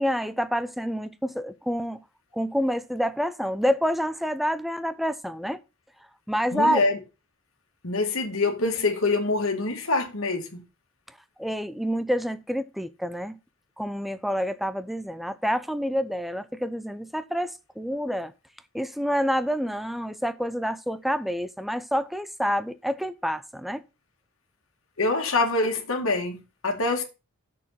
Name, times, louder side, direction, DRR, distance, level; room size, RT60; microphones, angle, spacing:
voice 1, 0.0-2.0 2.3-5.6 6.3-6.8 11.4-13.4 13.8-18.3 18.7-23.8, equal, ahead, 0.6 m, -28 dB
voice 2, 6.5-7.0 7.8-10.6 25.0-27.0, left 3 dB, 70° left, 1.9 m, -25 dB
6.7 x 6.1 x 5.6 m
head